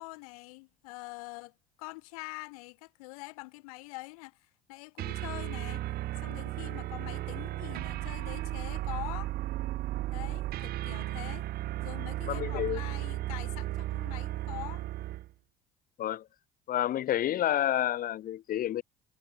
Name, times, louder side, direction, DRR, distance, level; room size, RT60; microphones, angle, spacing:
voice 1, 0.0-4.4 4.7-5.8 6.2-9.3 10.1-11.5 11.8-14.8, left 26 dB, 75° left, 4.4 m, -44 dB
sound 1, 5.0-15.3, right 15 dB, 55° right, 0.9 m, -35 dB
voice 2, 12.3-12.8 16.0-16.3 16.7-18.8, left 12 dB, 50° left, 1.2 m, -29 dB
hypercardioid pair, 60°, 19 cm